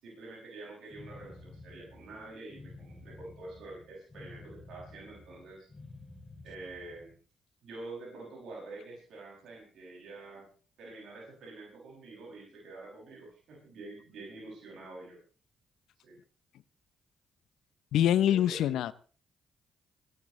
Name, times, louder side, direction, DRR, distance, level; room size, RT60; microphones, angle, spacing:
voice 1, 0.0-5.7 6.4-7.2 7.6-10.5 10.8-15.2 16.0-16.2 18.3-18.8, right 2 dB, 70° right, -2 dB, 6.5 m, -47 dB
sound 1, 0.9-7.2, left 2 dB, 30° left, 5.3 m, -51 dB
voice 2, 17.9-18.9, left 11 dB, 75° left, 18 dB, 0.7 m, -25 dB
27.5 x 12.0 x 3.2 m, 0.37 s
supercardioid pair, 50°, 0 cm